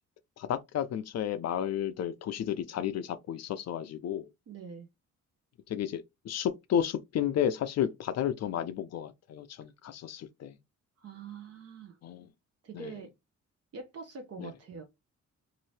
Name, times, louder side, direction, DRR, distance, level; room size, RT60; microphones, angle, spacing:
voice 1, 0.4-4.3 5.7-10.6 12.0-12.3 12.7-12.9 14.4-14.5, left 9 dB, 60° left, 0.4 m, -32 dB
voice 2, 4.5-4.9 11.0-12.0 12.6-13.1 13.7-14.8, right 5 dB, 55° right, 0.7 m, -44 dB
2.8 x 2.6 x 3.1 m
cardioid pair, 130°, 29 cm